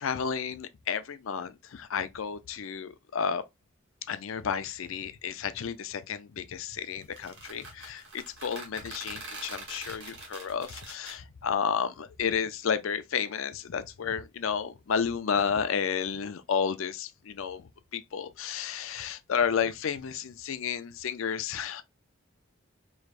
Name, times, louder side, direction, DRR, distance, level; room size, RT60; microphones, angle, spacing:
voice 1, 0.0-3.4 4.1-21.8, left 7 dB, 80° left, 0.5 m, -32 dB
sound 1, 7.0-11.2, right 2 dB, 60° right, 2.0 m, -43 dB
4.7 x 3.1 x 2.4 m
head